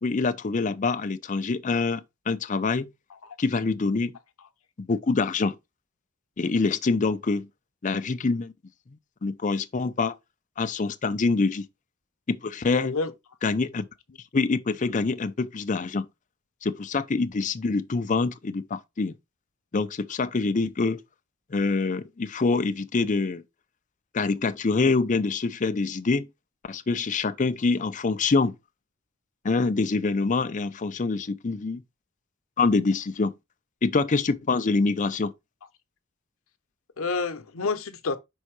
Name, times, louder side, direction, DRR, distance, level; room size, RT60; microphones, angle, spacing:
voice 1, 0.0-2.9 3.4-4.2 4.8-5.6 6.4-7.5 7.8-8.5 9.2-10.2 10.6-11.6 12.3-12.9 13.4-13.8 14.3-16.1 16.6-19.2 19.7-21.0 21.5-23.4 24.1-26.3 26.7-28.5 29.4-31.8 32.6-33.3 33.8-35.3, left 3 dB, 35° left, 0.5 m, -25 dB
voice 2, 12.7-13.1 37.0-38.2, left 4 dB, 85° left, 0.8 m, -29 dB
5.5 x 3.6 x 4.7 m
head